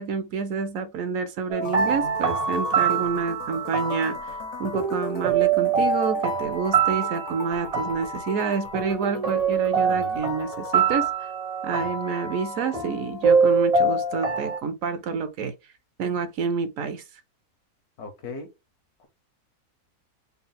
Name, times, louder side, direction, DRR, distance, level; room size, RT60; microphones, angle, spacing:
voice 1, 0.0-4.3 4.6-11.3 11.6-15.5 16.0-17.0, right 5 dB, 70° right, 0.9 m, -28 dB
sound 1, 1.5-14.6, right 5 dB, 40° right, 0.5 m, -25 dB
sound 2, 1.6-11.1, left 7 dB, 60° left, 0.8 m, -41 dB
voice 2, 9.9-10.2 18.0-18.5 19.0-19.1, left 4 dB, 80° left, 1.5 m, -38 dB
4.1 x 2.0 x 4.0 m
omnidirectional pair, 1.6 m